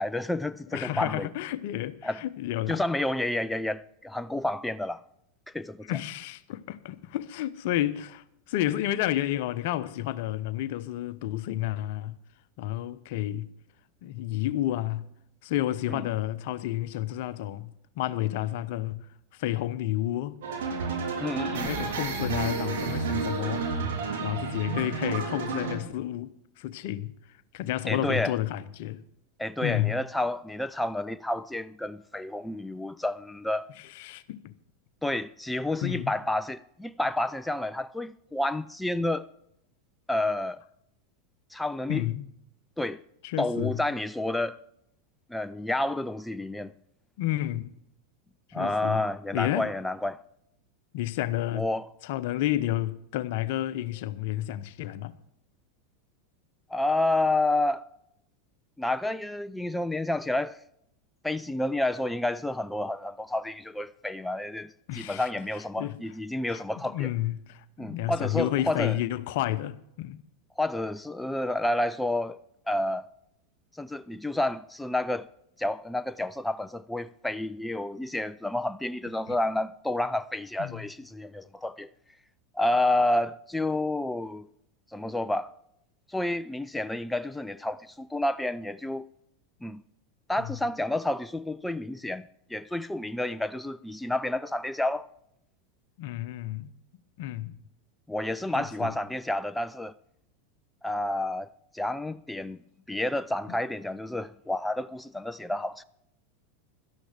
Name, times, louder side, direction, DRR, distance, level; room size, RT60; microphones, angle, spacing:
voice 1, 0.0-1.3 2.0-2.2 2.7-5.0 5.5-6.0 15.9-16.0 21.2-21.7 27.9-28.4 29.4-33.7 35.0-39.3 40.1-40.6 41.5-42.1 42.8-43.0 43.4-44.6 45.3-46.7 48.5-50.2 51.5-51.9 56.7-57.8 58.8-60.6 61.2-67.1 67.8-69.0 70.6-72.4 72.7-73.1 73.8-75.3 75.6-81.9 82.5-84.5 84.9-85.5 86.1-89.1 89.6-89.8 90.3-92.2 92.5-95.1 98.1-99.9 100.8-101.5 101.7-102.6 102.9-105.8, left 1 dB, 5° left, 0.4 m, -30 dB
voice 2, 0.7-2.8 5.9-12.2 12.6-13.5 14.0-15.1 15.4-19.0 19.3-20.4 21.6-23.7 24.2-26.3 26.6-27.1 27.5-29.0 29.6-30.0 33.8-34.5 35.8-36.1 41.9-42.3 43.2-43.8 47.2-47.7 48.5-49.0 49.3-49.7 50.9-51.7 52.0-55.1 64.9-65.3 65.8-65.9 66.5-70.2 79.3-79.4 80.6-80.8 90.4-90.5 96.0-96.7 97.2-97.6 98.5-98.9, left 14 dB, 60° left, 0.8 m, -31 dB
sound 1, 20.4-25.8, right 4 dB, 65° right, 3.2 m, -31 dB
17.5 x 12.5 x 3.4 m
hypercardioid pair, 90°, 0 cm